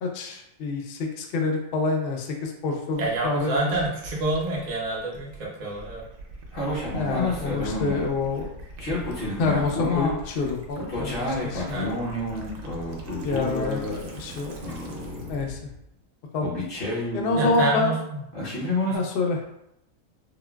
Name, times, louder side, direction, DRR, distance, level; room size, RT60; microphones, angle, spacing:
voice 1, 0.0-3.5 6.9-8.5 9.4-11.9 13.2-14.6 15.3-15.6 16.3-16.5 17.1-17.9 18.9-19.4, left 3 dB, 70° left, 1 dB, 0.5 m, -27 dB
Gurgling / Liquid, 2.9-15.5, right 2 dB, 75° right, 1.0 m, -41 dB
voice 2, 3.0-6.0 11.7-11.9 17.3-18.2, right 2 dB, 40° right, -3 dB, 0.7 m, -28 dB
sound 1, 6.5-8.1 8.8-10.2 10.8-14.2 14.6-15.7 16.4-17.6 18.3-19.0, left 2 dB, 45° left, 0.9 m, -29 dB
3.7 x 2.1 x 2.2 m, 0.81 s
omnidirectional pair, 1.4 m